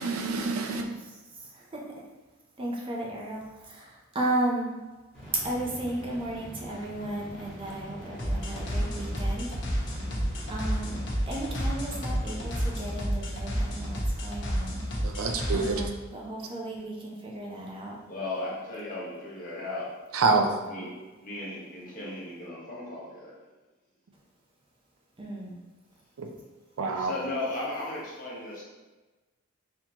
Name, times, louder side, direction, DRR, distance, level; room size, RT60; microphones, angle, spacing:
voice 1, 0.0-0.9 15.0-15.8 20.1-20.5 26.2-26.3 26.8-27.1, right 3 dB, 75° right, 3 dB, 0.5 m, -26 dB
voice 2, 1.0-2.1 2.6-4.8 5.3-10.1 10.5-11.0 11.3-15.2 15.5-18.0 25.2-25.6, right 1 dB, 25° right, -2 dB, 0.5 m, -35 dB
sound 1, 5.1-14.3, equal, 5° left, 1.2 m, -45 dB
sound 2, 8.2-15.9, equal, 60° left, 0.8 m, -30 dB
voice 3, 18.1-19.9 20.7-20.9 21.2-23.4 26.9-28.6, left 2 dB, 40° left, -6 dB, 1.2 m, -36 dB
4.2 x 2.9 x 2.8 m, 1.2 s
head